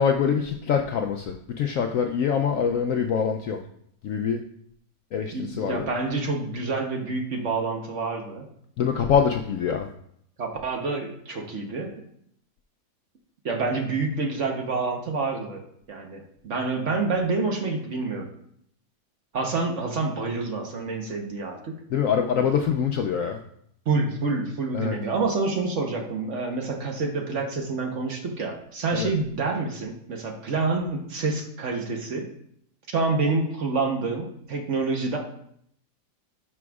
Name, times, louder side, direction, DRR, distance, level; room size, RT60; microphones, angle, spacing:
voice 1, 0.0-3.6 4.0-4.4 5.1-5.8 8.8-9.9 21.9-23.4 24.7-25.0 28.9-29.1, left 7 dB, 70° left, 4 dB, 0.8 m, -24 dB
voice 2, 5.3-8.4 10.4-11.9 13.4-15.6 15.9-18.3 19.3-21.8 23.9-32.3 32.9-35.2, right 3 dB, 50° right, 2 dB, 1.2 m, -27 dB
11.0 x 6.0 x 2.4 m, 0.69 s
omnidirectional pair, 1.8 m